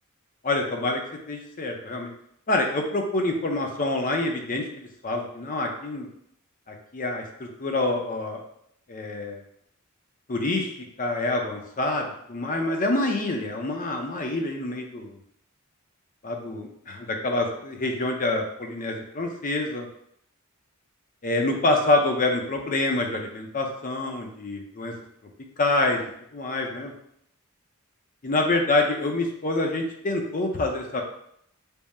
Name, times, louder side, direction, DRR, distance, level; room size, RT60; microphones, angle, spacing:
voice 1, 0.4-1.0 1.3-2.1 2.5-6.1 6.7-8.4 8.9-9.4 10.3-15.2 16.2-19.9 21.2-24.9 25.6-26.0 26.3-26.9 28.2-31.0, left 2 dB, 40° left, 3 dB, 0.5 m, -26 dB
3.6 x 2.1 x 4.1 m, 0.72 s
head